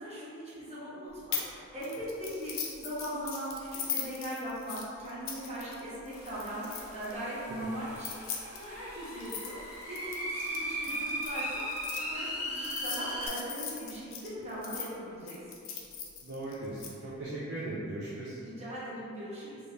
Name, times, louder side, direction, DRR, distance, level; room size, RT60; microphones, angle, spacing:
voice 1, 0.0-15.4 18.4-19.6, equal, 30° right, -10 dB, 1.0 m, -40 dB
sound 1, 1.3-1.5 1.8-7.1 7.9-12.0 12.6-14.9 15.3-16.9, left 7 dB, 60° left, 0.5 m, -39 dB
sound 2, 6.1-13.3, equal, 80° left, 1.1 m, -38 dB
voice 2, 16.2-18.4, right 2 dB, 50° right, -8 dB, 0.5 m, -38 dB
3.4 x 3.3 x 2.7 m, 2.5 s
head